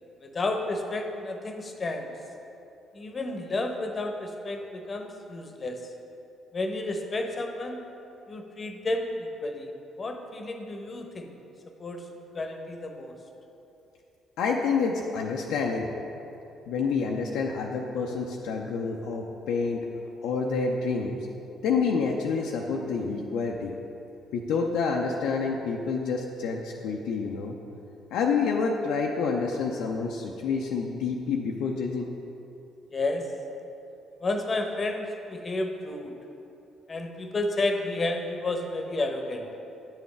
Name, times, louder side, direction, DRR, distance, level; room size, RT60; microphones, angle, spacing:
voice 1, 0.2-2.1 2.9-5.8 6.5-7.8 8.3-9.7 10.0-11.3 11.8-12.0 12.3-13.2 32.9-33.3 34.2-36.2 36.9-39.5, left 2 dB, 35° left, 5 dB, 0.9 m, -31 dB
voice 2, 14.4-15.9 16.7-19.8 20.2-21.2 21.6-23.7 24.3-27.6 28.1-32.1, left 5 dB, 65° left, 0 dB, 0.5 m, -28 dB
10.5 x 7.2 x 3.3 m, 2.9 s
figure-of-eight pair, 45°, 0 cm